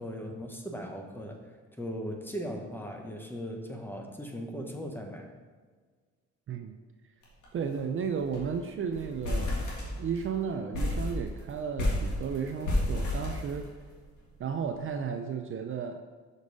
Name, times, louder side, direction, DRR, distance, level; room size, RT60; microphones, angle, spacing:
voice 1, 0.0-1.4 1.8-5.3, equal, 5° left, 2 dB, 1.0 m, -38 dB
voice 2, 6.5-6.8 7.5-9.5 9.9-13.7 14.4-16.0, right 6 dB, 45° right, 6 dB, 0.4 m, -33 dB
sound 1, 7.2-7.5 7.7-7.8 8.2-8.5 8.9-10.3 10.7-14.0, left 1 dB, 80° left, 1.9 m, -31 dB
6.2 x 5.3 x 4.0 m, 1.5 s
cardioid pair, 90°, 30 cm